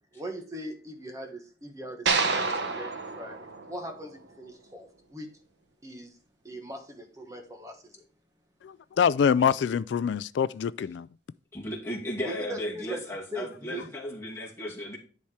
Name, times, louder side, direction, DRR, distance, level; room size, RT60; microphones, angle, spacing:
voice 1, 0.1-5.3 5.8-6.2 6.4-8.0 12.2-13.1 13.3-13.9, equal, 20° right, 1.2 m, -40 dB
sound 1, 2.1-4.4, right 4 dB, 75° right, 1.3 m, -29 dB
voice 2, 8.6-11.1, left 7 dB, 75° left, 0.3 m, -25 dB
voice 3, 11.5-15.0, equal, 15° left, 2.2 m, -35 dB
10.5 x 4.3 x 4.8 m
head